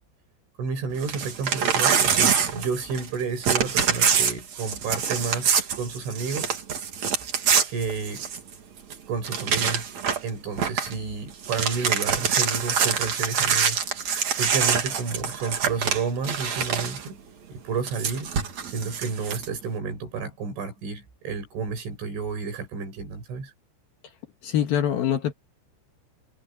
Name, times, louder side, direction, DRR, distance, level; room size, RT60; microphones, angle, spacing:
voice 1, 0.6-6.6 7.7-8.2 9.1-9.8 10.2-13.8 14.4-17.2 17.5-18.3 18.6-23.5, right 5 dB, 75° right, 7.7 m, -31 dB
Crumpling crinkling / Tearing, 1.0-3.2 3.4-8.5 8.9-9.0 9.2-10.3 10.6-10.9 11.3-17.1 17.9-19.5, right 7 dB, 45° right, 2.8 m, -25 dB
voice 2, 24.4-25.3, left 10 dB, 60° left, 2.9 m, -24 dB
omnidirectional pair, 5.5 m